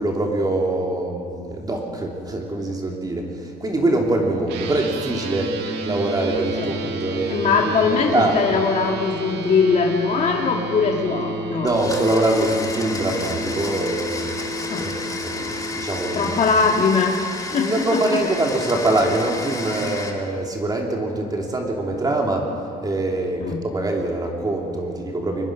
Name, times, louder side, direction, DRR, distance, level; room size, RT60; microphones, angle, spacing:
voice 1, 0.0-7.5 7.9-8.4 11.6-14.4 14.8-16.3 17.5-22.5 22.8-25.5, right 2 dB, 20° right, 0 dB, 3.1 m, -24 dB
sound 1, 4.5-16.4, right 1 dB, 85° right, 1.9 m, -31 dB
voice 2, 7.3-11.7 14.7-14.9 16.1-17.1 17.5-18.2 23.4-23.6, left 5 dB, 45° left, 1 dB, 2.0 m, -21 dB
Domestic sounds home sounds, 11.7-20.1, left 3 dB, 20° left, 2.8 m, -32 dB
23.5 x 20.5 x 6.2 m, 2.4 s
cardioid pair, 110°, 17 cm